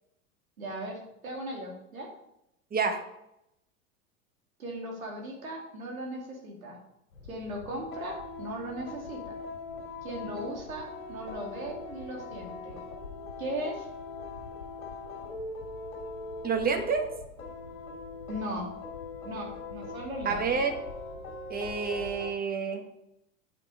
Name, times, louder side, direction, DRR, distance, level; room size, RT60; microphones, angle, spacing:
voice 1, 0.6-2.1 4.6-6.8 7.3-9.3 10.0-12.8 13.4-13.9 18.3-18.7 19.2-20.4, right 1 dB, 85° right, -1 dB, 2.8 m, -38 dB
voice 2, 2.7-3.0 16.4-17.0 20.2-20.7 21.5-22.8, right 5 dB, 20° right, 5 dB, 1.4 m, -28 dB
sound 1, 7.1-22.3, left 3 dB, 80° left, 2.7 m, -41 dB
8.9 x 6.0 x 4.8 m, 0.81 s
hypercardioid pair, 90°, 41 cm